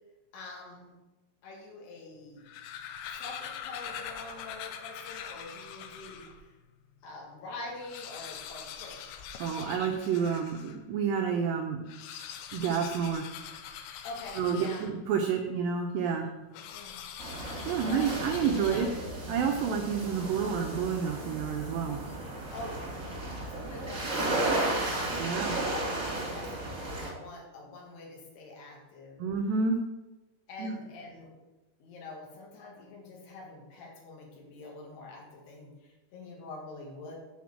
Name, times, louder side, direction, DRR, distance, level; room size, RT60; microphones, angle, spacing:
voice 1, 0.3-0.9 1.4-2.5 3.2-6.5 7.0-9.1 14.0-14.8 16.6-17.0 17.8-19.0 22.5-23.0 23.3-29.2 30.5-31.3 31.8-37.1, left 2 dB, 70° left, -2 dB, 3.8 m, -45 dB
sound 1, 2.3-6.4 7.0-7.1 7.3-7.4 7.7-10.8 11.8-15.2 16.5-19.2, left 8 dB, 85° left, 3.0 m, -43 dB
voice 2, 9.4-11.8 12.5-13.3 14.4-16.3 17.7-18.9 19.3-22.0 25.1-25.6 29.2-29.8 30.6-30.7, right 6 dB, 85° right, 3 dB, 2.0 m, -29 dB
sound 2, 17.2-27.1, right 2 dB, 40° right, 1.2 m, -34 dB
9.0 x 4.3 x 7.2 m, 1.1 s
omnidirectional pair, 5.0 m